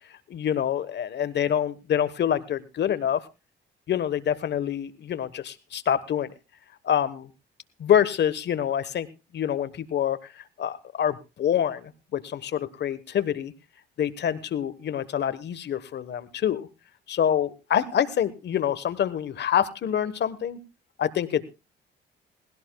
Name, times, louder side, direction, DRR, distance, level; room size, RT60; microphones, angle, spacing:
voice 1, 0.3-3.2 3.9-6.3 6.8-7.3 7.8-9.1 9.3-13.5 14.0-16.7 17.1-20.6 21.0-21.4, left 9 dB, 60° left, 15 dB, 1.2 m, -26 dB
19.5 x 16.5 x 2.3 m, 0.27 s
cardioid pair, 90°, 20 cm